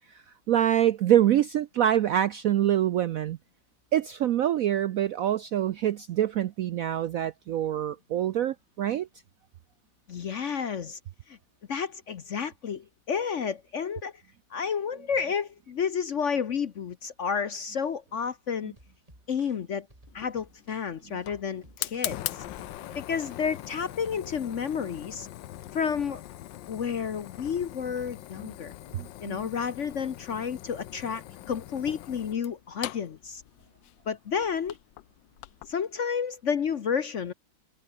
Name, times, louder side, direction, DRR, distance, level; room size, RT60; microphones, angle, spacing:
voice 1, 0.1-3.4 3.9-9.1 28.4-28.5 28.9-29.5, right 11 dB, 70° right, 0.8 m, -25 dB
voice 2, 10.1-11.0 11.3-11.4 11.7-14.1 14.5-18.7 19.3-19.9 20.1-22.4 22.9-25.3 25.7-26.2 26.7-28.7 29.2-33.4 34.1-34.7 35.7-37.3, left 7 dB, 50° left, 0.9 m, -31 dB
sound 1, 18.8-23.9, right 1 dB, 20° right, 7.1 m, -57 dB
Fire, 20.1-35.7, left 14 dB, 80° left, 1.4 m, -41 dB
omnidirectional pair, 2.0 m